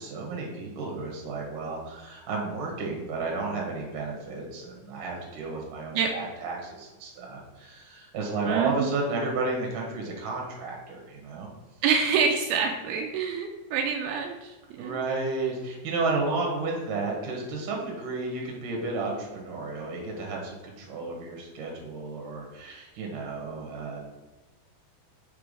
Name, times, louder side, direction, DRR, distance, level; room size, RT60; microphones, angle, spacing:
voice 1, 0.0-11.5 14.8-24.0, right 3 dB, 65° right, 0 dB, 2.6 m, -32 dB
voice 2, 8.4-8.9 11.8-15.0, right 6 dB, 85° right, 2 dB, 2.5 m, -27 dB
5.9 x 3.4 x 5.1 m, 1.2 s
omnidirectional pair, 4.4 m